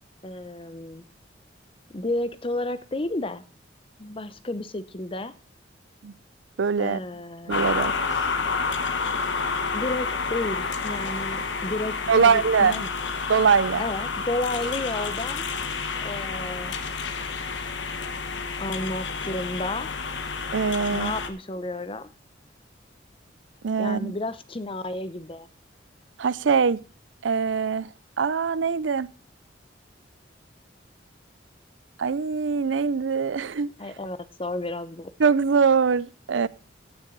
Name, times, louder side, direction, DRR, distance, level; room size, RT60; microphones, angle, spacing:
voice 1, 0.2-1.0 1.9-3.4 4.0-5.3 6.8-7.6 9.7-12.9 13.8-15.5 16.0-16.7 18.6-19.9 20.9-22.1 23.8-25.5 33.8-35.1, left 2 dB, 30° left, 0.8 m, -32 dB
voice 2, 6.6-7.0 7.5-7.9 12.1-12.7 13.3-13.8 20.5-21.1 23.6-24.1 26.2-26.8 27.2-27.9 28.2-29.1 32.0-33.7 35.2-36.5, right 5 dB, 80° right, 0.5 m, -22 dB
sound 1, 7.5-21.3, left 4 dB, 75° left, 1.2 m, -29 dB
16.5 x 6.2 x 3.9 m
head